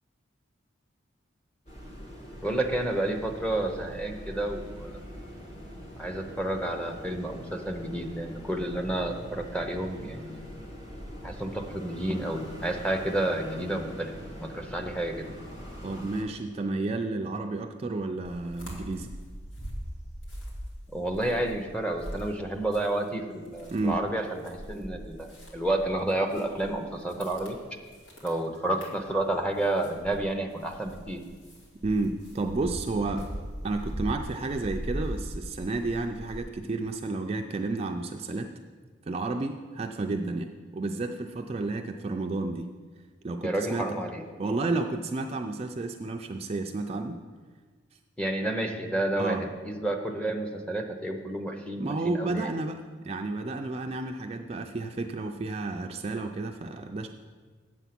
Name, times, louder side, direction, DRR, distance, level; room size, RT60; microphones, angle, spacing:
sound 1, 1.7-16.2, equal, 35° left, 1.6 m, -43 dB
voice 1, 2.4-5.0 6.0-10.4 11.2-14.1 14.4-15.3 20.9-27.6 28.2-31.2 43.4-44.2 48.2-52.5, right 1 dB, 5° left, 2 dB, 0.8 m, -30 dB
voice 2, 15.8-19.1 23.7-24.0 31.8-33.3 33.6-38.5 39.1-42.7 43.2-43.9 44.4-47.2 49.2-49.4 51.8-57.1, right 3 dB, 30° right, 4 dB, 0.3 m, -31 dB
sound 2, 18.2-23.1 23.4-36.4, equal, 70° left, 2.3 m, -40 dB
8.1 x 7.6 x 5.9 m, 1.5 s
head